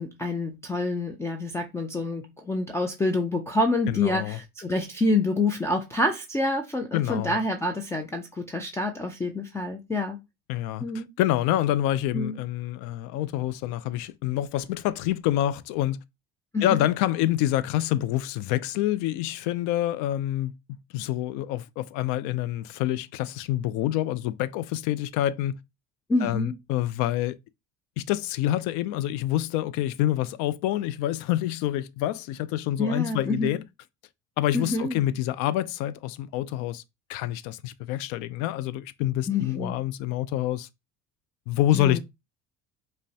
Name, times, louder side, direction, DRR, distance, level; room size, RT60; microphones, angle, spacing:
voice 1, 0.0-10.2 10.8-11.1 12.1-12.4 16.5-16.8 26.1-26.5 32.8-33.5 34.5-35.0 39.3-39.8 41.7-42.0, left 2 dB, 10° left, 0.3 m, -27 dB
voice 2, 3.9-4.4 6.9-7.4 10.5-16.0 16.6-20.5 20.9-25.5 26.2-27.4 28.0-33.6 34.4-36.8 37.1-40.7 41.5-42.0, left 13 dB, 75° left, 0.4 m, -27 dB
5.3 x 2.1 x 2.7 m
cardioid pair, 145°, 30 cm